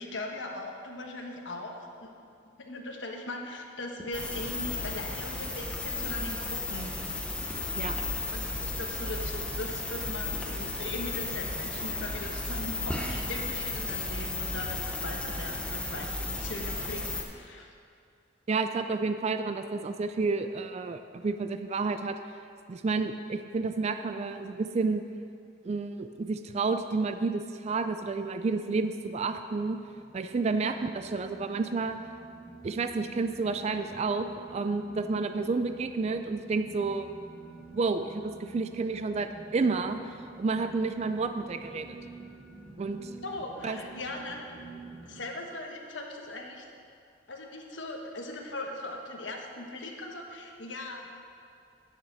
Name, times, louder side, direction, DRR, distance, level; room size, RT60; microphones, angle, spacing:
voice 1, 0.0-2.1 2.6-7.1 8.3-17.7 30.6-30.8 43.2-44.5 45.0-46.6 47.3-51.1, left 2 dB, 80° left, 1 dB, 1.2 m, -39 dB
sound 1, 4.1-17.2, left 2 dB, 5° left, 0.8 m, -34 dB
voice 2, 18.5-22.2 22.7-25.0 25.6-29.8 30.1-32.0 32.6-37.1 37.7-40.0 40.4-42.0 42.8-43.1 43.6-43.8, right 4 dB, 35° right, 8 dB, 0.3 m, -30 dB
sound 2, 28.5-45.2, right 4 dB, 15° right, 2.0 m, -49 dB
10.5 x 6.6 x 6.2 m, 2.4 s
head